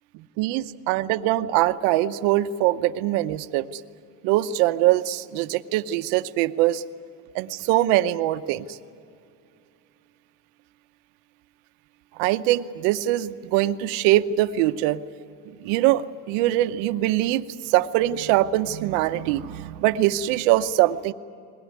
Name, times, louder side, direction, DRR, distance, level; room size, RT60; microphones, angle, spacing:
voice 1, 0.4-3.8 4.2-6.8 7.3-8.8 12.2-15.0 15.5-21.1, right 14 dB, 65° right, 11 dB, 0.9 m, -23 dB
22.0 x 18.5 x 9.7 m, 2.4 s
cardioid pair, 170°, 43 cm